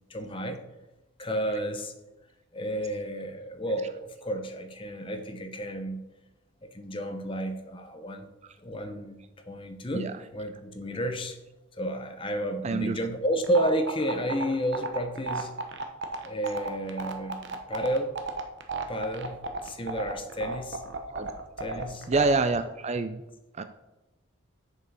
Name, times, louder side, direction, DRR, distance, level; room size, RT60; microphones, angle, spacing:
voice 1, 0.1-0.6 1.2-1.9 2.5-6.0 6.7-8.3 8.6-9.2 9.5-11.4 11.8-15.6 16.2-18.2 18.9-20.8 21.6-22.1, equal, 25° left, 7 dB, 0.8 m, -31 dB
voice 2, 12.6-12.9 21.1-21.3 22.1-23.2 23.6-23.7, right 3 dB, 30° right, 10 dB, 0.4 m, -26 dB
sound 1, 13.4-22.3, right 3 dB, 55° right, 1.0 m, -33 dB
7.1 x 6.8 x 5.5 m, 1.0 s
head